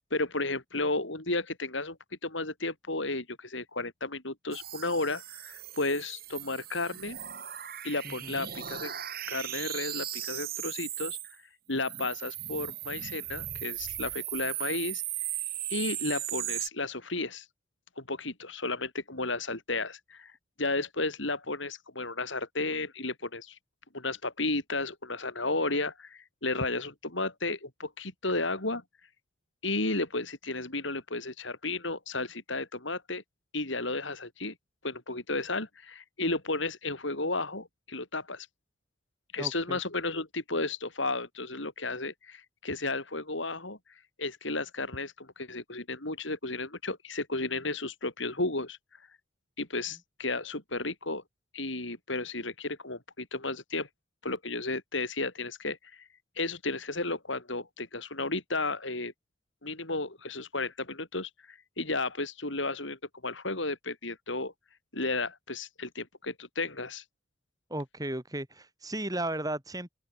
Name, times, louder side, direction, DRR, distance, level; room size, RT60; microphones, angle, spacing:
voice 1, 0.0-2.0 2.2-7.2 7.8-9.0 9.3-11.2 11.7-15.0 15.7-17.5 18.0-20.3 20.6-23.6 23.9-28.8 29.6-33.2 33.5-34.5 34.8-38.5 39.3-43.8 44.2-48.8 49.6-51.2 51.5-53.9 54.2-56.0 56.4-59.1 59.6-64.5 64.9-67.0, left 2 dB, 70° left, 6.1 m, -33 dB
sound 1, 4.5-11.4 11.7-16.7, right 12 dB, 50° right, 5.1 m, -37 dB
voice 2, 8.0-8.5 39.4-39.8 67.7-69.9, right 1 dB, 20° right, 4.2 m, -35 dB
open air
head